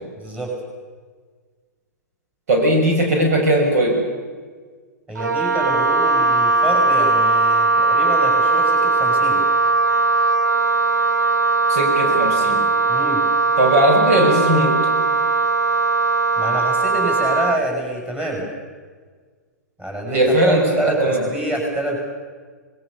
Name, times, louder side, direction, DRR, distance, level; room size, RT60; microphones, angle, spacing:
voice 1, 0.2-0.6 5.1-9.4 12.9-13.2 16.4-18.4 19.8-22.0, right 1 dB, 10° right, -1 dB, 7.6 m, -26 dB
voice 2, 2.5-4.0 11.7-12.6 13.6-14.7 20.1-21.2, right 1 dB, 60° right, 1 dB, 6.0 m, -18 dB
Wind instrument woodwind instrument, 5.2-17.6, right 3 dB, 85° right, 1.1 m, -19 dB
25.5 x 21.5 x 6.9 m, 1.5 s
figure-of-eight pair, 105°, 9 cm